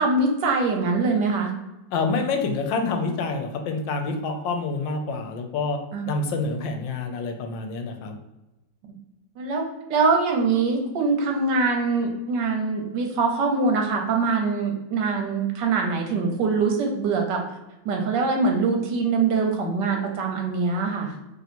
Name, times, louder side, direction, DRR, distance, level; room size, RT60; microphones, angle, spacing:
voice 1, 0.0-1.5 5.9-6.1 9.4-9.6 9.9-17.4 17.8-21.1, right 4 dB, 70° right, 2 dB, 1.3 m, -23 dB
voice 2, 1.9-5.8 6.1-8.2, left 3 dB, 80° left, 5 dB, 1.3 m, -27 dB
3.1 x 3.0 x 4.1 m, 0.97 s
omnidirectional pair, 2.0 m